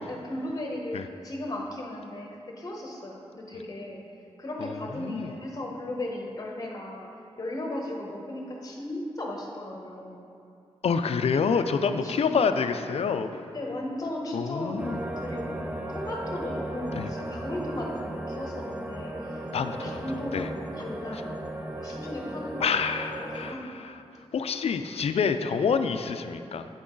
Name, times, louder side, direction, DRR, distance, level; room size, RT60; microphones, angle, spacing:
voice 1, 0.0-4.0 4.4-10.2 11.8-12.3 12.7-12.8 13.5-19.5 19.8-21.4 21.8-22.8 23.3-23.7, left 1 dB, 35° left, -1 dB, 1.1 m, -36 dB
voice 2, 4.6-5.3 10.8-13.5 14.3-15.0 16.9-17.1 19.5-20.0 20.3-20.5 22.6-23.6 24.3-26.7, left 5 dB, 70° left, 9 dB, 0.4 m, -27 dB
sound 1, 14.8-23.5, right 1 dB, 15° right, 0.5 m, -36 dB
8.8 x 6.0 x 3.8 m, 2.6 s
wide cardioid pair, 160°, 11 cm